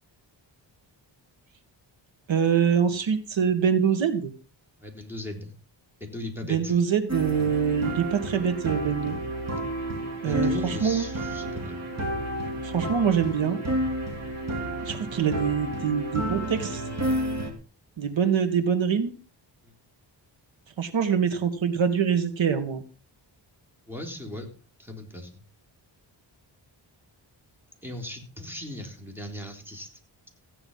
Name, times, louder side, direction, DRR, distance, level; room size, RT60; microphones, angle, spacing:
voice 1, 2.3-4.3 6.5-9.2 10.2-11.0 12.6-13.6 14.8-16.8 18.0-19.1 20.8-22.8, right 7 dB, 85° right, 8 dB, 1.9 m, -24 dB
voice 2, 4.8-5.5 6.0-6.7 10.2-11.8 19.6-19.7 23.9-24.5 24.8-25.4 27.8-29.9, left 1 dB, 5° right, 2 dB, 3.8 m, -38 dB
sound 1, 7.1-17.5, right 1 dB, 35° right, 3.8 m, -31 dB
15.5 x 9.6 x 5.5 m, 0.36 s
wide cardioid pair, 115°, 45 cm